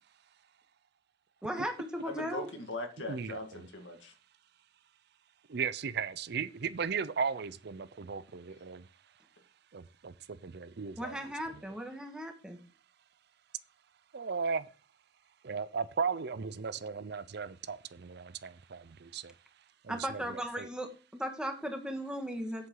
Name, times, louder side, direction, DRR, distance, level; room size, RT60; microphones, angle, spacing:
voice 1, 1.4-2.5 11.0-12.6 19.9-22.7, equal, 5° right, 1.6 m, -37 dB
voice 2, 2.1-4.1, left 2 dB, 70° left, 1.9 m, -40 dB
voice 3, 3.1-3.7 5.5-8.9 9.7-11.2 14.1-14.7 15.4-19.3 19.8-20.7, right 5 dB, 55° right, 0.5 m, -36 dB
8.4 x 7.9 x 3.8 m
head